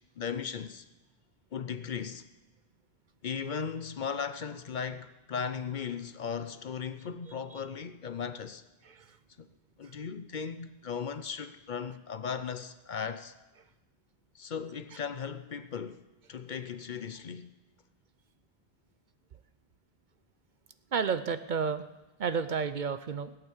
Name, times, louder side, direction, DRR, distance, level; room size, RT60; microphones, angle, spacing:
voice 1, 0.2-0.8 1.5-2.2 3.2-8.6 9.4-9.5 9.8-13.3 14.3-16.0 16.3-17.5, left 6 dB, 55° left, 0.7 m, -37 dB
voice 2, 8.8-9.2 9.8-9.9 14.9-15.0 20.9-21.9 22.2-23.4, right 6 dB, 55° right, 0.7 m, -31 dB
17.0 x 8.9 x 7.2 m
omnidirectional pair, 1.0 m